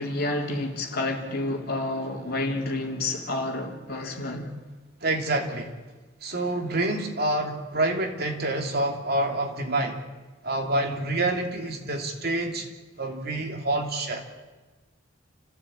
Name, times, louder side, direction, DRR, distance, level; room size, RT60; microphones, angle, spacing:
voice 1, 0.0-4.5, left 2 dB, 50° left, 3.4 m, -29 dB
voice 2, 5.0-5.7 6.2-10.0 10.4-12.7 13.0-14.2, right 2 dB, 50° right, 2.9 m, -27 dB
29.5 x 15.5 x 8.8 m
head